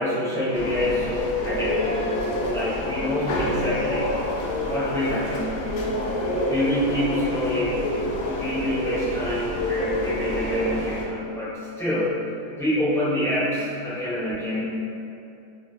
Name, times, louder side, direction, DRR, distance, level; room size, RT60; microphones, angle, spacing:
voice 1, 0.0-4.2 4.6-5.8 6.5-8.0 8.2-12.2 12.6-14.6, left 1 dB, 5° left, -12 dB, 0.6 m, -26 dB
sound 1, 0.5-11.0, left 1 dB, 70° left, 0.8 m, -27 dB
4.3 x 3.1 x 2.7 m, 2.6 s
omnidirectional pair, 1.9 m